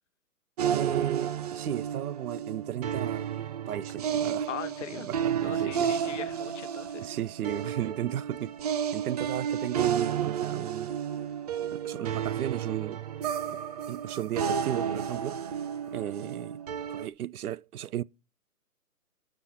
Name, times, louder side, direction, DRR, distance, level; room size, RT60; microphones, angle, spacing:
sound 1, 0.6-17.1, right 8 dB, 25° right, 0.6 m, -32 dB
voice 1, 0.7-3.3 3.7-4.5 4.9-6.0 7.0-8.5 8.9-10.9 11.8-13.0 13.9-15.4 15.9-16.6 16.9-18.0, right 11 dB, 70° right, 0.6 m, -35 dB
voice 2, 4.5-5.1 5.4-7.1 15.9-16.0, left 9 dB, 50° left, 1.0 m, -40 dB
10.0 x 6.1 x 8.5 m
hypercardioid pair, 140°, 45 cm